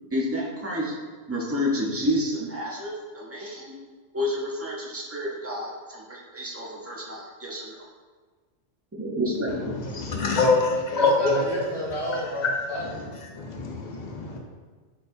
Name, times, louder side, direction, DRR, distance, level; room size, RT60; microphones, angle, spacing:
voice 1, 0.1-0.9 1.3-3.8 4.1-7.8 9.0-9.8, equal, 25° right, -4 dB, 0.3 m, -29 dB
voice 2, 9.7-11.4 12.4-12.5 12.8-12.9 13.3-14.4, left 3 dB, 50° left, 0 dB, 0.5 m, -24 dB
voice 3, 10.9-12.8 13.3-13.4, equal, 25° left, -8 dB, 1.3 m, -30 dB
4.4 x 4.0 x 2.5 m, 1.4 s
omnidirectional pair, 1.2 m